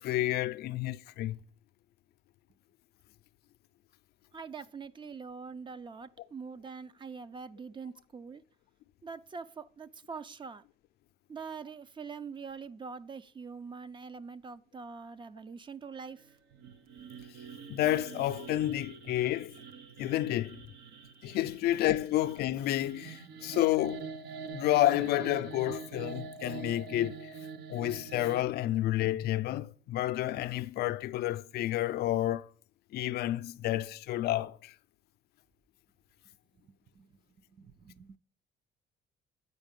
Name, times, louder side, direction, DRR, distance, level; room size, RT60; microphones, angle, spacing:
voice 1, 0.0-1.4 17.7-19.5 20.0-20.6 21.2-24.1 24.5-27.3 27.7-32.5 32.9-34.7, left 14 dB, 70° left, 0.5 m, -30 dB
voice 2, 4.3-8.4 9.0-10.6 11.3-16.3 37.0-37.1 37.5-38.2, right 5 dB, 30° right, 0.5 m, -44 dB
sound 1, 16.5-28.4, right 5 dB, 75° right, 0.9 m, -45 dB
8.3 x 4.8 x 5.2 m
cardioid pair, 110°, 17 cm